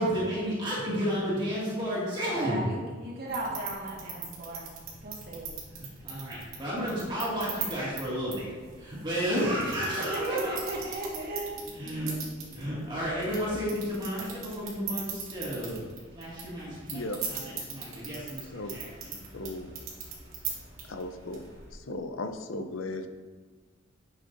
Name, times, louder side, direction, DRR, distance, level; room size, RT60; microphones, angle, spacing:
voice 1, 0.0-2.6 5.7-10.6 11.6-12.2 12.5-15.8 16.1-19.1, equal, 25° right, -8 dB, 2.1 m, -32 dB
voice 2, 2.3-4.7 5.0-5.5 10.0-11.6, right 1 dB, 55° right, -4 dB, 1.7 m, -36 dB
sound 1, 3.3-21.8, right 5 dB, 90° right, 2.1 m, -41 dB
voice 3, 16.7-17.5 18.5-18.8 19.3-19.7 20.9-21.5 21.9-23.1, left 2 dB, 80° left, 7 dB, 0.6 m, -37 dB
9.5 x 6.2 x 2.6 m, 1.4 s
head